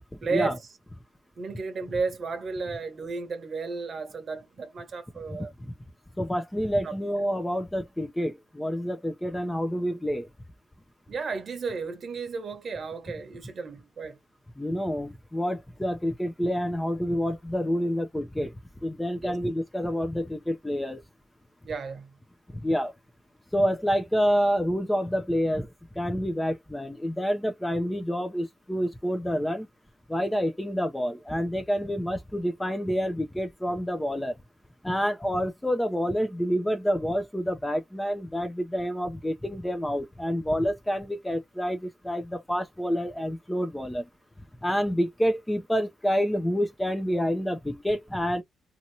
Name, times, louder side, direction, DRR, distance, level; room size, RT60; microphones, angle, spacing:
voice 1, 0.2-0.6 1.4-5.5 6.8-7.0 11.1-14.2 19.2-19.4 21.6-22.1, right 4 dB, 45° right, 1.1 m, -33 dB
voice 2, 5.3-5.7 6.2-10.3 14.6-18.5 18.8-21.0 22.5-22.9 23.5-25.7 26.0-29.7 30.1-34.4 34.8-44.1 44.6-48.4, equal, 10° left, 0.6 m, -28 dB
2.9 x 2.6 x 2.8 m
cardioid pair, 90°, 0 cm